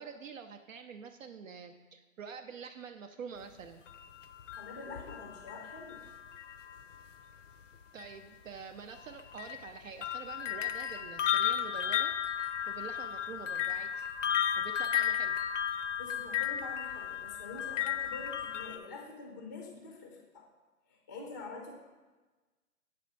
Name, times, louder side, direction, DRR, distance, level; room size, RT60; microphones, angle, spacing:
voice 1, 0.0-3.8 7.9-12.1 12.7-14.0 14.5-15.4, right 6 dB, 65° right, 6 dB, 0.6 m, -46 dB
sound 1, 3.9-7.0 8.0-8.1 8.9-18.8, left 9 dB, 60° left, 0.6 m, -34 dB
voice 2, 4.6-6.0 16.0-20.4 20.9-21.7, left 3 dB, 15° left, 0 dB, 0.5 m, -46 dB
8.3 x 3.4 x 5.2 m, 1.2 s
hypercardioid pair, 150°, 43 cm